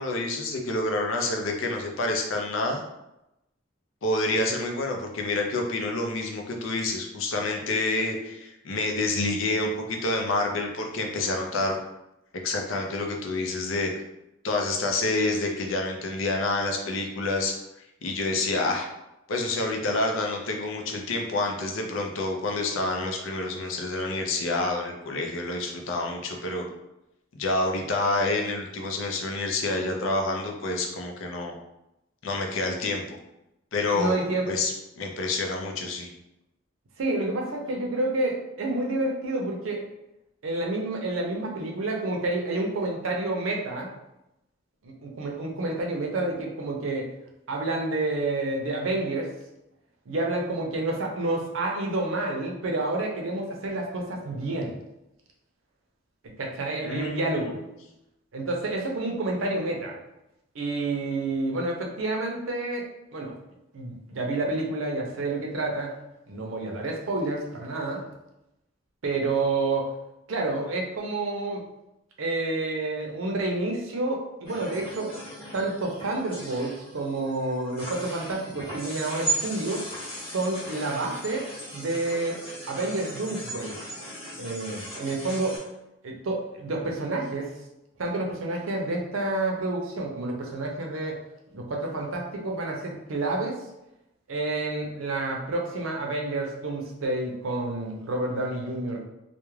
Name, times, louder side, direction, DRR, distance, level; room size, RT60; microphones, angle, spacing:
voice 1, 0.0-2.8 4.0-11.8 12.4-13.9 14.4-17.5 18.0-18.9 19.3-26.6 27.3-31.5 32.2-33.0 33.7-34.2 34.5-36.1 56.8-57.6, left 2 dB, 75° left, 2 dB, 0.5 m, -28 dB
voice 2, 33.9-34.5 37.0-39.8 40.4-43.9 44.8-47.1 47.5-49.3 50.1-54.8 56.4-57.6 58.3-60.0 60.5-62.9 63.1-63.3 63.7-65.9 66.3-68.0 69.0-69.9 70.3-71.6 72.2-75.1 75.5-79.9 80.2-81.4 81.7-83.8 84.4-85.6 86.0-87.5 88.0-91.2 91.5-93.6 94.3-99.0, right 2 dB, 80° right, 0 dB, 0.5 m, -29 dB
sound 1, 74.4-85.6, right 1 dB, 30° left, 0.9 m, -37 dB
2.3 x 2.1 x 3.1 m, 0.90 s
head